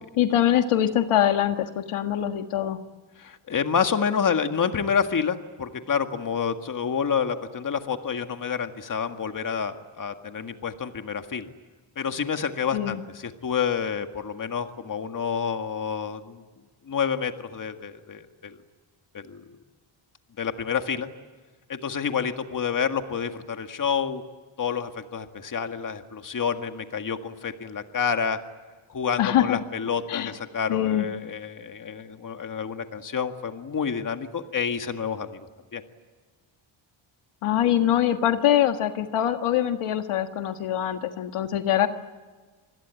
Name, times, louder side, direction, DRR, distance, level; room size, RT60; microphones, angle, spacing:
voice 1, 0.2-2.8 12.7-13.0 29.2-29.6 30.1-30.3 30.7-31.1 37.4-41.9, left 11 dB, 80° left, 7 dB, 1.7 m, -23 dB
voice 2, 3.2-11.5 12.0-16.4 16.9-18.6 19.1-19.5 20.4-21.1 21.7-24.2 24.6-28.4 28.9-35.5 35.7-35.8, left 6 dB, 40° left, 7 dB, 1.9 m, -28 dB
27.5 x 20.5 x 9.2 m, 1.4 s
cardioid pair, 120°, 49 cm